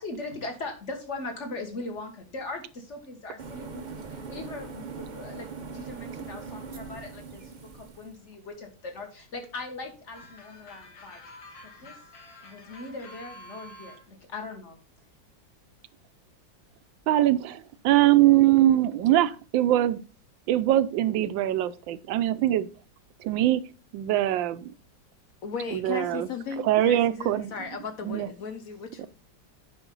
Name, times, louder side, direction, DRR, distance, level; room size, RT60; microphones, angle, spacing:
voice 1, 0.0-11.2 11.8-11.9 12.4-14.8, left 2 dB, 40° left, 1.8 m, -39 dB
sound 1, 3.4-8.2, right 5 dB, 60° right, 0.4 m, -41 dB
sound 2, 10.1-14.0, left 1 dB, 80° left, 2.2 m, -48 dB
voice 2, 17.1-20.0 20.5-22.7 23.2-23.6 23.9-24.7 25.7-26.3 26.6-27.5 28.0-28.3, right 13 dB, 90° right, 1.3 m, -22 dB
voice 3, 25.4-29.1, left 6 dB, 60° left, 1.0 m, -36 dB
9.0 x 5.4 x 3.8 m
omnidirectional pair, 2.0 m